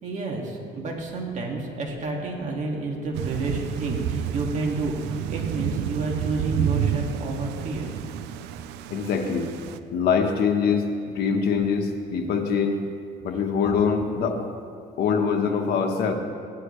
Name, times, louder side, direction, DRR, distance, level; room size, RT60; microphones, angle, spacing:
voice 1, 0.0-7.9, right 2 dB, 45° right, -1 dB, 2.2 m, -30 dB
Thunder / Rain, 3.1-9.8, right 10 dB, 90° right, 0.5 m, -30 dB
voice 2, 8.9-9.5 9.9-12.8 13.2-14.5 15.0-16.1, left 6 dB, 70° left, 3 dB, 1.4 m, -23 dB
17.0 x 10.5 x 3.3 m, 2.4 s
cardioid pair, 110°, 17 cm